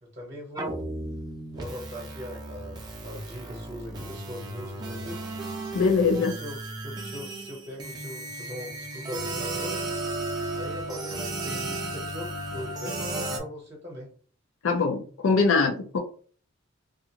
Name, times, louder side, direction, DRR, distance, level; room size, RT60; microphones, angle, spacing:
voice 1, 0.0-0.9 1.5-5.2 6.0-9.9 10.5-14.1, equal, 35° right, -2 dB, 0.9 m, -40 dB
sound 1, 0.6-13.4, right 2 dB, 20° right, 0.5 m, -34 dB
voice 2, 5.7-6.3 14.6-16.0, left 4 dB, 85° left, 1 dB, 0.5 m, -22 dB
2.4 x 2.4 x 2.8 m, 0.42 s
head